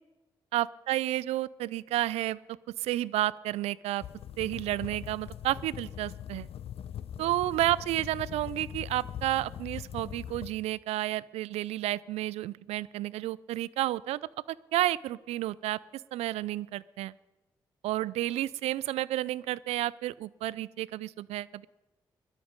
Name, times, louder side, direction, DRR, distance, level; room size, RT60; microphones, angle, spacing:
voice 1, 0.5-4.0 4.4-6.5 7.2-14.2 14.5-15.8 16.1-17.1 17.8-21.7, right 15 dB, 75° right, 21 dB, 0.4 m, -31 dB
sound 1, 4.0-10.5, left 10 dB, 65° left, 0.7 m, -41 dB
17.5 x 12.5 x 5.2 m, 1.1 s
hypercardioid pair, 40°, 11 cm